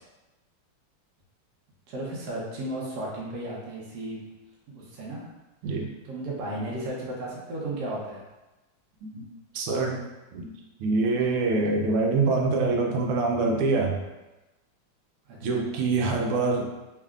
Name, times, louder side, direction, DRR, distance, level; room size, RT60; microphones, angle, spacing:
voice 1, 1.9-4.2 4.7-5.3 6.1-8.2 15.3-15.6, right 1 dB, 60° right, -5 dB, 1.2 m, -34 dB
voice 2, 9.5-10.0 10.3-10.5 10.8-14.0 15.4-16.7, right 3 dB, 90° right, 1 dB, 1.5 m, -25 dB
3.5 x 3.3 x 2.4 m, 1.1 s
omnidirectional pair, 2.4 m